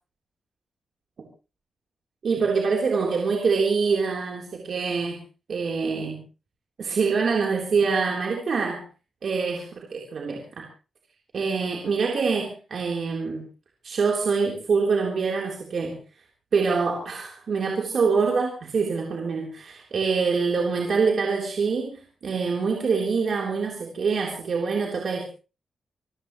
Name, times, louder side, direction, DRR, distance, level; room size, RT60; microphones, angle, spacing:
voice 1, 2.2-5.2 5.5-6.2 6.8-8.8 9.2-10.7 11.3-13.4 13.8-16.0 16.5-25.3, right 5 dB, 60° right, 0 dB, 3.6 m, -25 dB
27.0 x 14.5 x 3.2 m, 0.34 s
wide cardioid pair, 115°, 0 cm